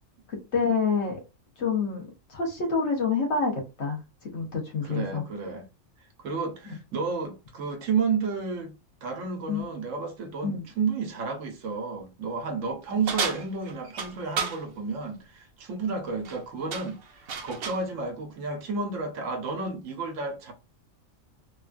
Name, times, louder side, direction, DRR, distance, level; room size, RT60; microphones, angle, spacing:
voice 1, 0.3-1.2 1.6-5.2 9.5-9.7 10.4-10.7, left 5 dB, 60° left, 1.3 m, -28 dB
voice 2, 4.8-5.6 6.2-8.7 9.0-17.0 17.4-20.5, right 4 dB, 85° right, 1.2 m, -31 dB
sound 1, 13.1-14.6 16.1-16.4 16.7-17.9, right 6 dB, 60° right, 0.7 m, -32 dB
3.5 x 2.3 x 2.4 m
omnidirectional pair, 1.3 m